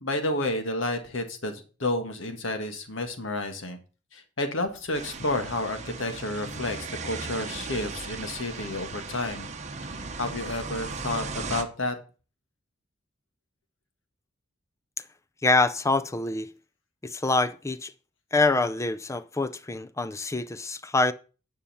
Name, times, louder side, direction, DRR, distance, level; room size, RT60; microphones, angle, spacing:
voice 1, 0.0-3.8 4.1-6.8 7.0-9.5 9.9-11.9, left 2 dB, 65° left, 1.7 m, -30 dB
sound 1, 4.9-11.6, right 4 dB, 35° right, 0.9 m, -37 dB
voice 2, 15.4-16.5 17.0-17.9 18.3-21.1, left 3 dB, 15° left, 0.4 m, -25 dB
10.0 x 5.6 x 5.5 m
head